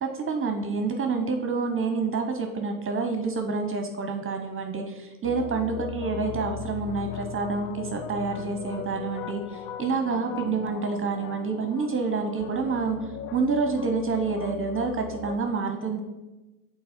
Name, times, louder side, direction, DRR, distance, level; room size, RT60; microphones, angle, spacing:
voice 1, 0.0-13.0 13.3-16.0, right 4 dB, 30° right, 5 dB, 0.8 m, -28 dB
sound 1, 5.2-15.4, left 10 dB, 70° left, 0.6 m, -39 dB
5.3 x 4.1 x 4.3 m, 1.1 s
hypercardioid pair, 75°, 44 cm